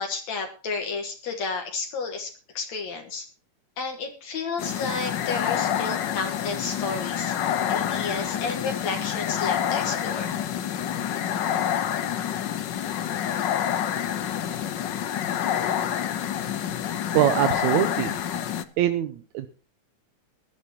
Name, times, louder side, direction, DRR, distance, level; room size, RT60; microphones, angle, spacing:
voice 1, 0.0-2.3 2.5-3.3 3.8-7.4 7.7-10.3, left 4 dB, 70° left, 4 dB, 2.8 m, -31 dB
sound 1, 4.6-18.6, left 10 dB, 85° left, 0.9 m, -27 dB
voice 2, 17.1-18.2 18.8-19.5, right 12 dB, 80° right, 10 dB, 2.2 m, -23 dB
20.0 x 12.0 x 3.0 m, 0.37 s
omnidirectional pair, 3.3 m